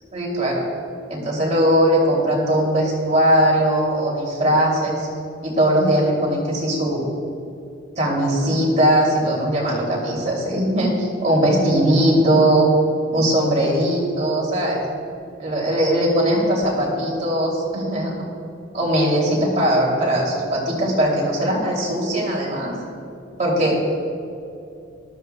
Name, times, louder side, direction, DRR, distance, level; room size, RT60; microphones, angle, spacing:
voice 1, 0.1-0.6 1.1-5.1 5.4-7.0 8.0-12.7 13.1-14.8 15.4-18.1 18.7-22.7 23.4-23.8, right 1 dB, 35° right, -3 dB, 2.9 m, -19 dB
19.0 x 13.0 x 2.3 m, 2.7 s
head